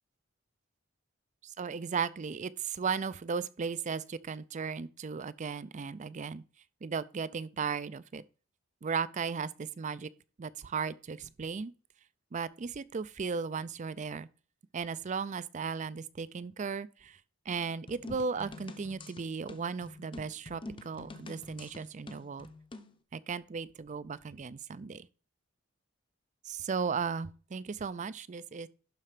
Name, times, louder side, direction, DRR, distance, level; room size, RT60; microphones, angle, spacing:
voice 1, 1.4-6.4 6.8-8.2 8.8-10.1 10.4-11.7 12.3-14.3 14.7-17.2 17.5-22.5 23.1-25.1 26.4-28.7, right 5 dB, 35° right, 0.4 m, -36 dB
sound 1, 17.9-22.9, left 2 dB, 25° left, 0.7 m, -47 dB
11.5 x 4.2 x 5.0 m
head